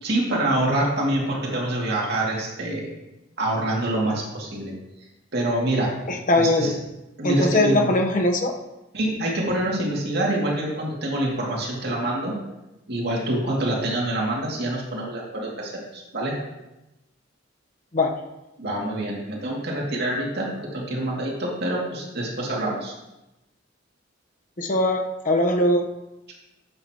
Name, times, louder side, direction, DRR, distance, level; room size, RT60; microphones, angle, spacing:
voice 1, 0.0-2.9 3.4-4.8 5.3-6.0 6.3-6.7 7.2-7.9 8.9-12.4 12.9-16.4 18.6-22.9, right 1 dB, 55° right, -3 dB, 2.5 m, -26 dB
voice 2, 6.1-6.7 7.2-8.5 17.9-18.1 24.6-25.8, left 1 dB, 45° left, 3 dB, 1.0 m, -21 dB
11.5 x 7.8 x 3.0 m, 0.98 s
head